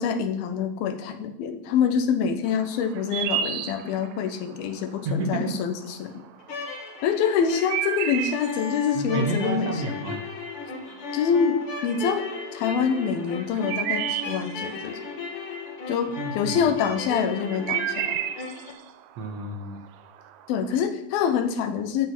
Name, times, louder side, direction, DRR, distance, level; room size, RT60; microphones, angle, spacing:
voice 1, 0.0-6.2 7.0-9.7 11.1-15.0 15.9-16.1 16.4-18.2 20.5-22.1, left 7 dB, 85° left, 8 dB, 2.9 m, -26 dB
sound 1, 2.5-20.8, right 10 dB, 80° right, 1.7 m, -34 dB
voice 2, 5.1-5.6 8.9-10.3 16.2-16.7 19.2-19.8, right 2 dB, 60° right, 5 dB, 2.0 m, -30 dB
sound 2, 6.4-18.7, left 3 dB, 45° left, 2.3 m, -35 dB
14.5 x 8.8 x 6.0 m, 0.84 s
omnidirectional pair, 4.2 m